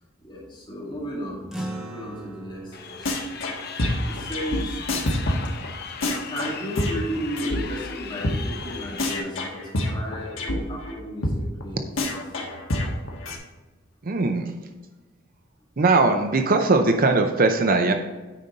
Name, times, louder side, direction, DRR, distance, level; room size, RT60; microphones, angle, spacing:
voice 1, 0.2-1.5 1.9-3.3 4.1-4.8 6.3-11.9 12.3-12.4, equal, 25° left, -6 dB, 2.8 m, -34 dB
sound 1, 1.5-6.2, right 1 dB, 5° right, 1.4 m, -40 dB
Crowd, 2.7-9.2, left 6 dB, 50° left, 0.6 m, -38 dB
sound 2, 3.1-3.5 3.8-7.6 7.9-8.0 8.2-8.4 8.6-8.7 9.0-10.6 10.9-11.0 11.2-11.4 11.6-11.7 12.0-13.4, left 1 dB, 75° left, 1.4 m, -26 dB
voice 2, 14.0-14.5 15.8-17.9, right 3 dB, 45° right, 6 dB, 0.6 m, -20 dB
9.3 x 5.1 x 4.0 m, 1.2 s
head